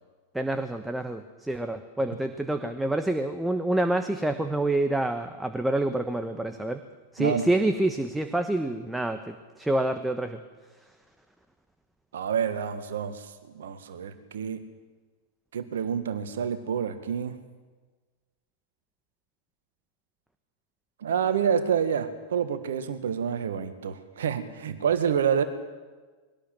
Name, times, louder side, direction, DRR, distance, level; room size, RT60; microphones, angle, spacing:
voice 1, 0.3-6.8 7.1-10.4, right 1 dB, 5° right, 8 dB, 1.3 m, -27 dB
voice 2, 7.2-7.5 12.1-14.6 15.5-17.4 21.0-25.4, right 7 dB, 60° right, 10 dB, 1.7 m, -28 dB
22.5 x 18.0 x 7.7 m, 1.4 s
figure-of-eight pair, 90°, 0 cm